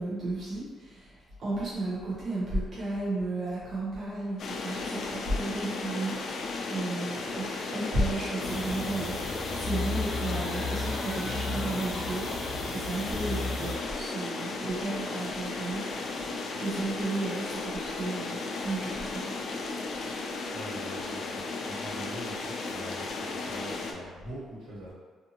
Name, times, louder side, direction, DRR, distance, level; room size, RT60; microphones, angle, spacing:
voice 1, 0.0-19.3, right 2 dB, 50° right, -8 dB, 0.8 m, -34 dB
sound 1, 4.4-23.9, left 3 dB, 65° left, 0.4 m, -35 dB
sound 2, 8.4-13.8, left 2 dB, 40° left, 0.8 m, -34 dB
voice 2, 20.5-24.9, right 1 dB, 85° right, -9 dB, 1.3 m, -43 dB
2.6 x 2.5 x 2.8 m, 1.5 s
cardioid pair, 90°, 0 cm